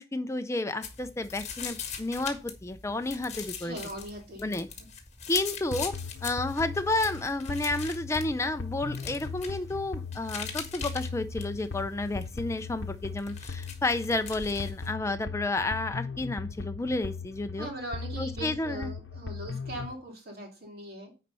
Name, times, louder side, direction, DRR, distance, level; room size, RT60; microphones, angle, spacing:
voice 1, 0.0-3.8 4.4-4.7 5.3-5.9 6.2-17.7 18.2-18.9, left 2 dB, 15° left, 10 dB, 0.4 m, -31 dB
sound 1, 0.8-14.9, left 6 dB, 40° left, 1.6 m, -42 dB
voice 2, 3.6-4.9 17.6-21.1, right 1 dB, 55° right, 1 dB, 2.7 m, -40 dB
sound 2, 5.7-19.9, left 4 dB, 80° left, 0.8 m, -39 dB
9.8 x 4.2 x 5.4 m, 0.31 s
head